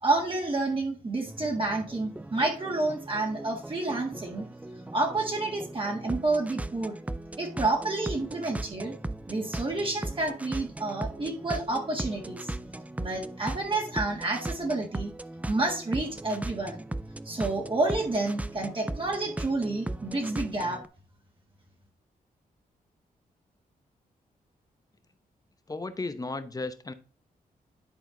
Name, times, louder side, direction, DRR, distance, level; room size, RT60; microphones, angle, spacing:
voice 1, 0.0-4.5 4.9-7.0 7.4-8.9 9.3-12.5 13.0-15.1 15.5-16.8 17.3-20.8, right 2 dB, 35° right, 1.7 m, -29 dB
sound 1, 1.3-20.9, right 2 dB, 10° right, 0.4 m, -38 dB
voice 2, 25.7-26.9, left 3 dB, 25° left, 0.9 m, -34 dB
10.5 x 4.3 x 3.9 m
cardioid pair, 80°, 16 cm